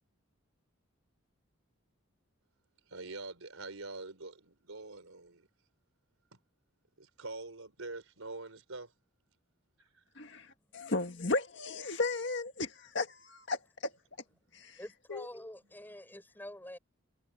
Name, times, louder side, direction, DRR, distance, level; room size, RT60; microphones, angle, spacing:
voice 1, 2.9-5.5 7.0-8.9 9.8-10.0, right 3 dB, 85° right, 4.0 m, -45 dB
voice 2, 10.2-13.9 14.5-14.8 15.1-15.3, left 3 dB, 55° left, 1.8 m, -35 dB
voice 3, 14.8-16.8, left 1 dB, 10° left, 7.0 m, -47 dB
head